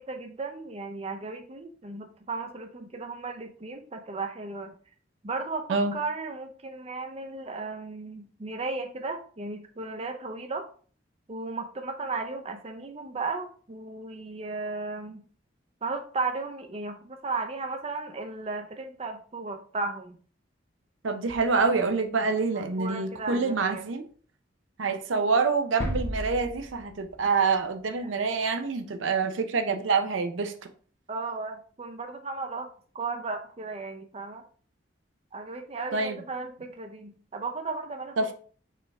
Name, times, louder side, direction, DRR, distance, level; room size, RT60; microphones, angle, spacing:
voice 1, 0.0-4.8 5.2-10.7 11.3-15.2 15.8-20.2 22.5-23.8 28.0-28.1 31.1-34.4 35.3-38.2, right 3 dB, 30° right, 0.5 m, -35 dB
voice 2, 21.0-24.1 24.8-30.5 35.9-36.2 38.2-38.3, right 4 dB, 90° right, 0.6 m, -26 dB
sound 1, 25.8-27.6 27.9-28.0, equal, 10° left, 0.9 m, -34 dB
4.5 x 3.3 x 3.5 m
head